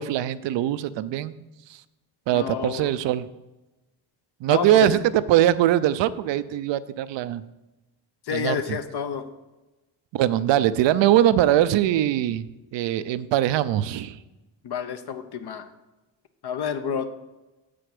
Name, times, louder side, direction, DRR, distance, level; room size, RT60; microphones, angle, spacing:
voice 1, 0.0-1.3 1.7-1.8 2.3-3.3 4.4-7.4 8.3-8.6 10.1-12.5 12.7-14.2, right 12 dB, 70° right, 15 dB, 0.6 m, -21 dB
voice 2, 2.3-2.9 4.5-4.9 8.2-9.2 14.6-15.7 16.4-17.1, left 7 dB, 60° left, 9 dB, 0.9 m, -29 dB
6.9 x 5.0 x 6.0 m, 1.1 s
supercardioid pair, 55°, 45 cm